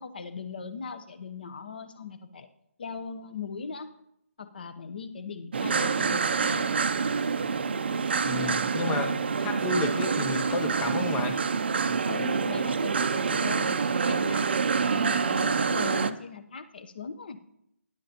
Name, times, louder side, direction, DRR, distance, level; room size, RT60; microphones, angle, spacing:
voice 1, 0.0-2.5 2.8-3.9 4.4-6.8 12.0-14.6 14.9-17.4, left 5 dB, 40° left, 10 dB, 0.8 m, -39 dB
sound 1, 5.5-16.1, right 5 dB, 45° right, 0.5 m, -27 dB
voice 2, 8.1-11.4, left 3 dB, 5° left, 6 dB, 0.5 m, -32 dB
17.5 x 10.5 x 2.9 m, 0.77 s
hypercardioid pair, 175°, 8 cm